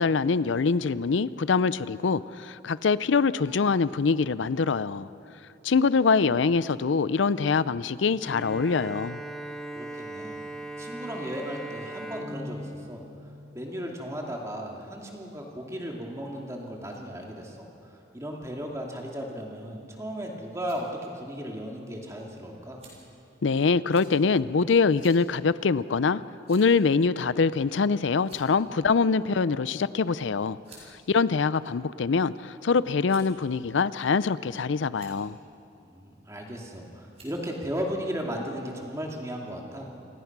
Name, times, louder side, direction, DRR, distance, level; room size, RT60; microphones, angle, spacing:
voice 1, 0.0-5.1 5.6-9.2 23.4-26.2 26.5-30.6 31.1-35.4, left 4 dB, 80° left, 0.5 m, -24 dB
Bowed string instrument, 8.2-13.9, right 1 dB, 5° left, 1.3 m, -39 dB
voice 2, 9.8-10.4 10.8-13.0 13.5-22.8 35.8-39.9, equal, 15° right, 2.5 m, -36 dB
sound 1, 20.6-20.8 21.6-21.7 22.8-23.2 23.9-24.1 25.0-25.2 25.6-25.7 26.4-26.8 27.7-27.9 28.2-28.7 29.8-29.9 30.6-30.9 31.7-32.3 33.1-33.4 34.2-34.5 34.9-35.2 36.4-36.7 37.1-37.4, right 3 dB, 35° right, 5.6 m, -52 dB
28.0 x 17.5 x 6.0 m
head